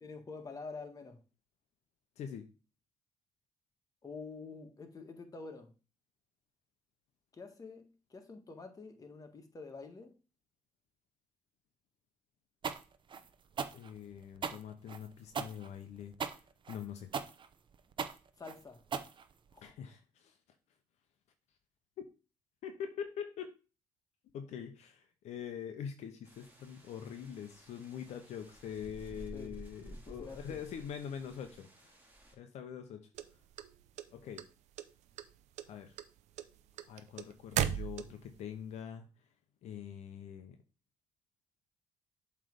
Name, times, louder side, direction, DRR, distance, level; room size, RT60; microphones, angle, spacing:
voice 1, 0.0-1.2 4.0-5.7 7.3-10.2 18.4-18.8 19.5-19.7 28.1-28.2 29.3-29.6 29.9-30.6, left 4 dB, 30° left, 1.6 m, -48 dB
voice 2, 2.2-2.5 13.7-16.1 16.7-17.1 19.6-20.3 22.0-22.1 22.6-23.5 24.3-31.9 32.4-33.1 34.1-34.5 35.7-35.9 36.9-39.1 39.6-40.6, left 8 dB, 75° left, 0.8 m, -44 dB
sound 1, 12.6-19.7, right 6 dB, 45° right, 0.7 m, -39 dB
sound 2, 26.3-32.4, right 1 dB, 15° right, 2.5 m, -53 dB
sound 3, 33.2-34.4 34.8-35.3 35.6-38.4, right 11 dB, 80° right, 0.6 m, -36 dB
7.6 x 3.4 x 5.2 m
cardioid pair, 85°, 12 cm